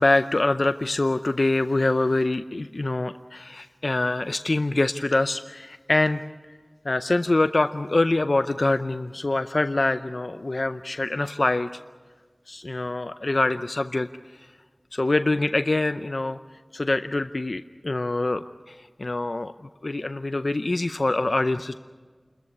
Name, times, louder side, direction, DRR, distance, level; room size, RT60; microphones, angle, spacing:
voice 1, 0.0-6.2 6.8-11.7 12.5-14.1 14.4-14.5 14.9-16.4 16.7-19.5 19.8-21.8, left 2 dB, 70° left, 10 dB, 0.6 m, -24 dB
28.5 x 14.0 x 9.6 m, 1.5 s
wide cardioid pair, 45°, 0 cm